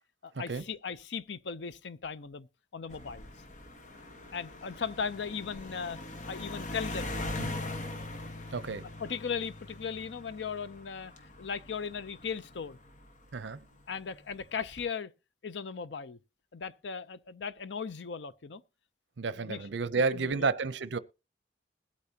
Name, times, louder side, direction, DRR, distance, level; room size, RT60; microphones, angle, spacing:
voice 1, 0.2-2.5 2.7-3.3 4.3-6.0 6.3-7.2 8.4-8.5 9.0-12.8 13.9-15.1 15.4-16.2 16.5-18.6 19.4-19.7 20.1-20.5, left 6 dB, 80° left, 0.6 m, -37 dB
sound 1, 2.9-13.6 14.4-14.8, left 2 dB, 45° left, 1.3 m, -42 dB
voice 2, 8.5-8.9 13.3-13.7 19.2-21.0, right 4 dB, 85° right, 0.6 m, -31 dB
21.0 x 8.3 x 2.8 m
head